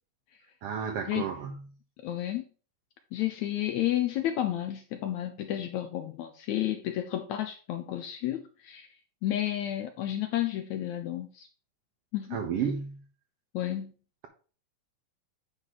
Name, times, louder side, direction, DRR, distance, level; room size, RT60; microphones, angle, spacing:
voice 1, 0.6-1.6 12.3-13.0, right 7 dB, 85° right, 1.3 m, -32 dB
voice 2, 2.0-2.4 3.1-8.9 9.2-11.5 12.1-12.4 13.5-13.9, left 12 dB, 75° left, 1.7 m, -31 dB
9.6 x 4.6 x 3.9 m
omnidirectional pair, 3.9 m